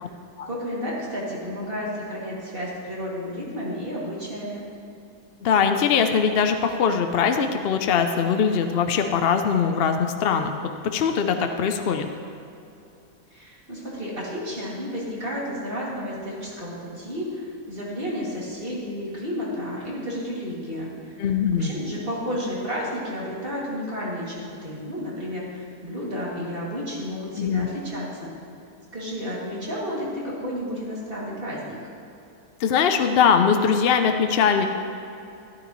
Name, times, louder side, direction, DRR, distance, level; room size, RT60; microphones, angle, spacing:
voice 1, 0.5-4.6 13.3-21.3 21.6-28.3 28.9-31.8, equal, 35° right, -6 dB, 2.6 m, -32 dB
voice 2, 5.4-10.6 10.9-12.1 21.2-21.7 27.4-27.7 32.6-34.7, left 6 dB, 60° left, 6 dB, 0.6 m, -21 dB
12.5 x 12.0 x 3.1 m, 2.8 s
omnidirectional pair, 1.6 m